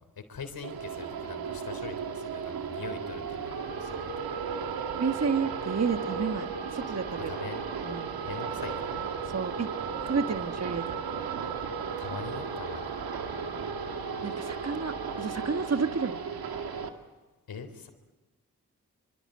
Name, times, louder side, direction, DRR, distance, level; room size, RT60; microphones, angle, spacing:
voice 1, 0.3-4.1 7.3-7.6 8.2-8.9 12.0-12.9 17.5-17.9, left 5 dB, 75° left, 8 dB, 3.7 m, -42 dB
sound 1, 0.6-16.9, right 6 dB, 85° right, 2.0 m, -35 dB
voice 2, 5.0-6.5 6.7-7.3 7.8-8.2 9.3-9.7 10.1-10.9 14.2-16.2, right 5 dB, 45° right, 8 dB, 1.6 m, -30 dB
26.0 x 24.5 x 7.9 m, 1.2 s
cardioid pair, 45°, 35 cm